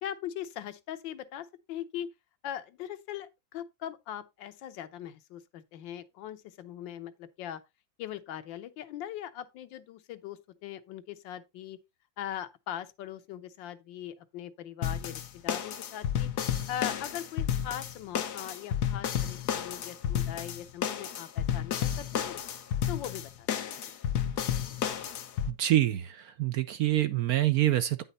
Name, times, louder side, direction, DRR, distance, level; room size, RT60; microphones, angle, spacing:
voice 1, 0.0-2.1 2.4-7.6 8.0-11.8 12.2-16.3 16.7-22.4 22.9-23.5, left 10 dB, 90° left, 1.5 m, -40 dB
sound 1, 14.8-25.5, left 9 dB, 65° left, 1.4 m, -32 dB
voice 2, 25.5-28.0, right 13 dB, 65° right, 0.9 m, -26 dB
9.1 x 5.6 x 3.9 m
omnidirectional pair, 2.0 m